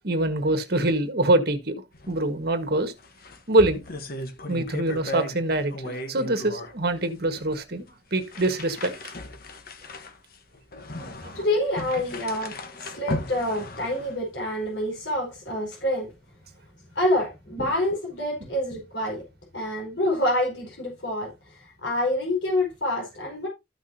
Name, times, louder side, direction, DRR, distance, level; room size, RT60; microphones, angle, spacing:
voice 1, 0.0-1.8 2.1-2.9 3.5-3.8 4.5-7.8 8.1-9.1 11.0-11.4 17.6-17.7, right 2 dB, 60° right, 1.6 m, -24 dB
sound 1, 1.9-2.2 2.5-2.6 3.0-5.4 5.7-6.7 7.4-7.5 8.2-14.2, left 2 dB, 55° left, 1.2 m, -36 dB
voice 2, 11.3-12.6 12.8-16.1 16.9-19.2 19.5-23.5, left 1 dB, 80° left, 4.9 m, -27 dB
13.5 x 6.0 x 2.8 m
head